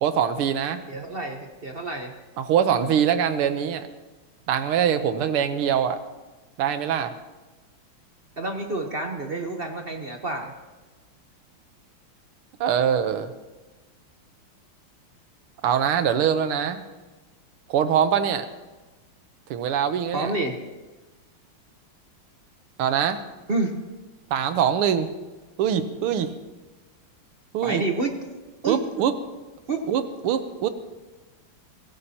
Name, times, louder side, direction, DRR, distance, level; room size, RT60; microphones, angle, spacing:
voice 1, 0.0-0.8 2.4-3.9 4.5-6.0 6.6-7.1 12.6-13.3 15.6-16.8 17.7-18.5 19.5-20.3 22.8-23.2 24.3-25.1 25.6-26.3 27.5-27.8 28.7-29.1 29.9-30.7, right 8 dB, 90° right, 10 dB, 1.8 m, -23 dB
voice 2, 0.9-2.1 8.4-10.5 20.1-20.6 23.5-23.7 27.6-28.2 28.6-28.8 29.7-29.8, right 2 dB, 45° right, 3 dB, 0.7 m, -28 dB
24.5 x 15.5 x 2.9 m, 1.2 s
omnidirectional pair, 2.4 m